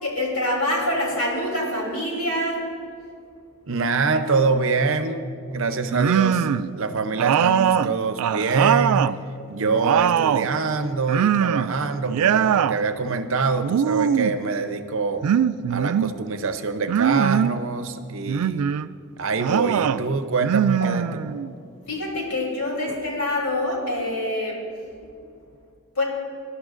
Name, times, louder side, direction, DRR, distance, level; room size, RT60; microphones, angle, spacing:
voice 1, 0.0-2.6 21.9-24.6 25.9-26.0, left 1 dB, 75° left, -2 dB, 3.2 m, -25 dB
voice 2, 3.7-6.5 6.7-9.2 9.5-15.3 15.7-18.7 19.2-21.1 22.9-23.0, right 4 dB, 60° right, 9 dB, 0.6 m, -25 dB
sound 1, 5.9-6.7 7.2-9.2 9.5-10.5 11.1-11.8 12.0-12.8 13.6-14.4 15.2-16.1 16.9-17.6 18.3-18.9 19.4-20.0 20.4-21.5, right 8 dB, 90° right, 0.3 m, -21 dB
21.0 x 11.0 x 2.5 m, 2.3 s
head